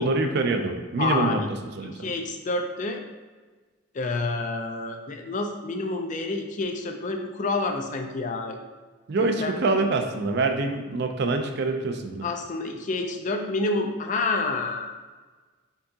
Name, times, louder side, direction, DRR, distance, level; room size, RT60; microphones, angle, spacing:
voice 1, 0.0-1.4 1.8-2.0 9.1-12.2, right 3 dB, 55° right, 5 dB, 0.4 m, -25 dB
voice 2, 1.0-1.5 1.8-3.0 3.9-8.6 9.2-9.5 9.8-9.9 12.2-15.1, left 3 dB, 40° left, 4 dB, 0.4 m, -28 dB
4.5 x 3.7 x 2.8 m, 1.4 s
head